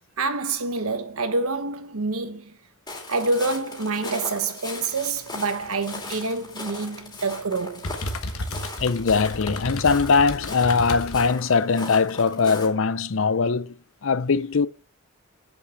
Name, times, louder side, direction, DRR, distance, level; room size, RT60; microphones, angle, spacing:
voice 1, 0.2-2.6 3.1-7.9, right 3 dB, 85° right, 1.2 m, -27 dB
Walk footsteps, 2.9-12.7, left 2 dB, 20° left, 2.5 m, -38 dB
sound 1, 4.9-11.3, left 1 dB, 80° left, 1.4 m, -35 dB
voice 2, 8.8-13.8 14.0-14.7, left 5 dB, 65° left, 0.6 m, -21 dB
7.8 x 6.8 x 7.0 m
head